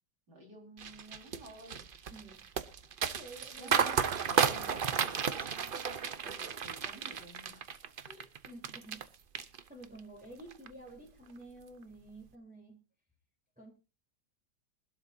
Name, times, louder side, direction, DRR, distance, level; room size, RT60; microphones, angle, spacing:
voice 1, 0.3-1.9 3.6-7.7 8.1-8.3, right 1 dB, 70° right, 1 dB, 5.1 m, -52 dB
sound 1, 0.8-9.0 9.3-10.0 10.4-10.7, right 7 dB, 50° right, 0.6 m, -33 dB
voice 2, 2.1-2.4 3.2-3.8 8.5-9.1 9.7-12.8 13.6-13.7, right 2 dB, 5° right, -2 dB, 3.5 m, -50 dB
23.5 x 12.0 x 2.6 m, 0.30 s
omnidirectional pair, 1.8 m